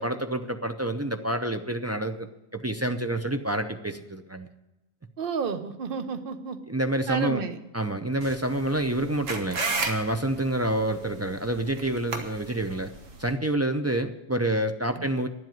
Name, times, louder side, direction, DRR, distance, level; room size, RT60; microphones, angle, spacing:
voice 1, 0.0-2.3 2.5-4.5 6.7-7.4 7.7-9.6 9.8-12.9 13.2-15.3, right 1 dB, 25° right, 7 dB, 0.3 m, -28 dB
voice 2, 5.2-6.6 7.1-7.6 15.0-15.1, right 5 dB, 45° right, 9 dB, 1.0 m, -31 dB
sound 1, 8.2-13.3, right 3 dB, 75° right, 1.8 m, -34 dB
11.0 x 7.8 x 9.2 m, 0.93 s
omnidirectional pair, 1.3 m